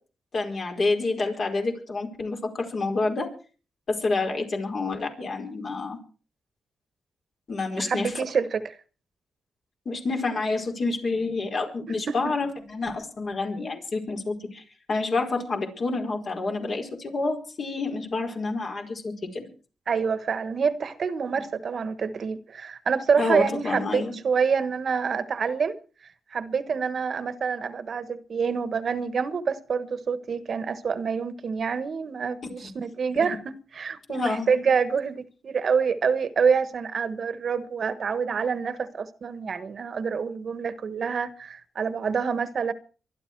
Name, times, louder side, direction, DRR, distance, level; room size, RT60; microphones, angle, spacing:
voice 1, 0.3-3.3 3.9-6.0 7.5-8.1 9.8-19.4 21.3-21.4 23.2-24.1 33.1-33.3 34.1-34.5, left 3 dB, 50° left, 4.7 m, -28 dB
voice 2, 7.8-8.6 12.1-12.2 19.9-25.8 26.3-42.7, right 6 dB, 55° right, 1.3 m, -27 dB
24.0 x 11.5 x 4.6 m
cardioid pair, 85°, 0 cm